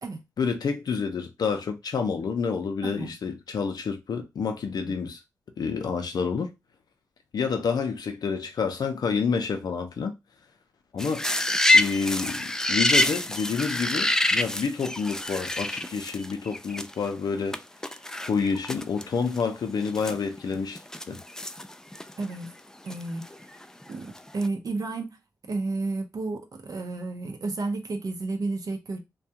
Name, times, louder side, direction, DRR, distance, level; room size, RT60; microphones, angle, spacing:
voice 1, 0.4-5.2 5.6-6.5 7.3-10.2 10.9-11.3 11.7-17.6 18.3-20.8 21.1-21.2, left 5 dB, 70° left, 0.5 m, -28 dB
voice 2, 2.8-3.1 4.8-4.9 22.2-22.5 22.8-23.2 23.9-25.2 25.5-29.0, right 3 dB, 60° right, 0.6 m, -32 dB
sound 1, 11.0-17.1 17.5-17.6 17.8-19.0 19.4-19.5 19.9-22.3 22.9-23.8 24.2-24.5, left 1 dB, 10° left, 0.3 m, -26 dB
2.3 x 2.2 x 2.7 m
supercardioid pair, 45°, 7 cm